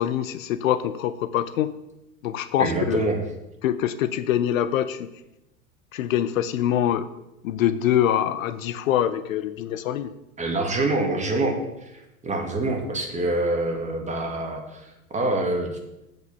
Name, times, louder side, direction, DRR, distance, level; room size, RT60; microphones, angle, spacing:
voice 1, 0.0-1.7 2.2-3.0 3.6-5.1 5.9-7.1 7.4-10.1, left 11 dB, 70° left, 14 dB, 0.7 m, -24 dB
voice 2, 2.6-3.2 10.4-11.6 11.8-15.7, right 2 dB, 15° right, 2 dB, 2.1 m, -26 dB
8.1 x 5.3 x 6.9 m, 0.92 s
hypercardioid pair, 90°, 42 cm